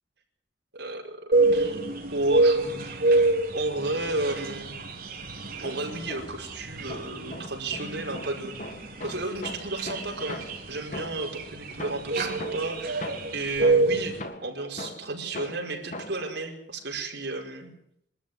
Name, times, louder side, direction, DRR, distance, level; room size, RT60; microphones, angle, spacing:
voice 1, 0.7-1.8 2.1-3.0 3.5-4.7 5.6-17.7, right 2 dB, 65° right, 1 dB, 5.2 m, -33 dB
sound 1, 1.3-14.2, right 2 dB, 50° right, 3.2 m, -27 dB
sound 2, 5.4-6.5 6.9-11.4 11.8-16.3, left 1 dB, 40° left, 2.0 m, -41 dB
23.0 x 13.5 x 9.9 m, 0.75 s
head